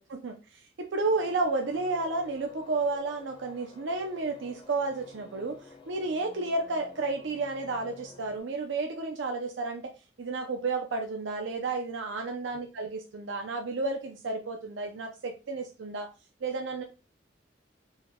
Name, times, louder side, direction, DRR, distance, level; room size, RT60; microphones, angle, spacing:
voice 1, 0.0-9.9 10.2-16.1 16.4-16.8, right 3 dB, 80° right, 4 dB, 0.5 m, -32 dB
sound 1, 1.0-8.4, left 3 dB, 25° left, 0.5 m, -51 dB
4.2 x 2.2 x 3.5 m, 0.31 s
head